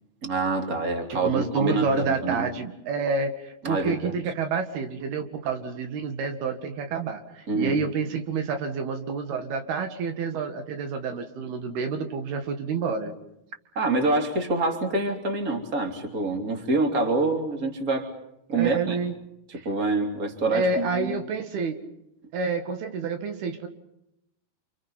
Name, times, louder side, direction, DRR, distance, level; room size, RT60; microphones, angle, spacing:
voice 1, 0.2-2.5 3.6-4.1 7.5-7.8 13.7-18.1 18.5-19.0 19.5-21.2, right 3 dB, 20° right, 4 dB, 3.3 m, -26 dB
voice 2, 1.1-13.2 18.6-19.2 19.5-19.7 20.5-21.8 22.3-23.7, right 4 dB, 70° right, 6 dB, 3.7 m, -28 dB
29.0 x 28.5 x 5.7 m, 0.82 s
omnidirectional pair, 4.8 m